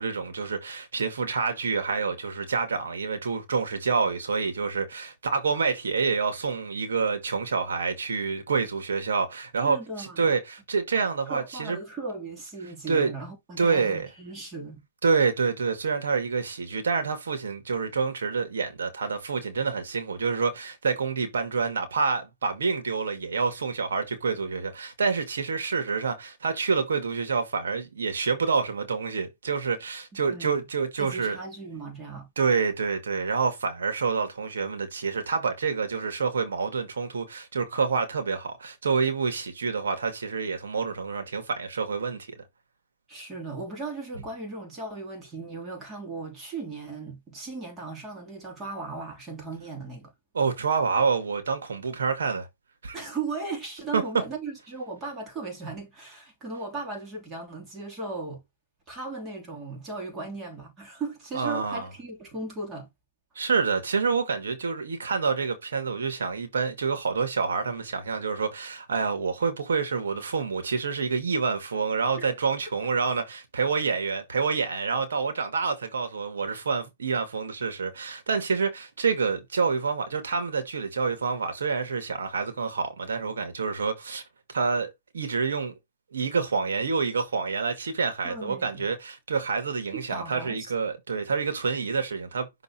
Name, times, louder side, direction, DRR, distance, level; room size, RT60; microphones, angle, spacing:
voice 1, 0.0-11.8 12.9-13.1 13.6-14.1 15.0-31.4 32.4-42.3 50.3-52.5 52.8-53.0 53.9-54.0 61.3-61.9 63.4-84.2 84.5-85.7 86.1-92.5, right 5 dB, 85° right, 1.9 m, -27 dB
voice 2, 9.6-10.3 11.3-14.8 30.3-30.6 31.0-32.3 43.1-50.1 52.9-58.4 58.9-62.9 72.2-72.3 88.2-88.9 89.9-90.7, right 3 dB, 20° right, 3.3 m, -37 dB
6.2 x 3.8 x 4.3 m
hypercardioid pair, 140°, 0 cm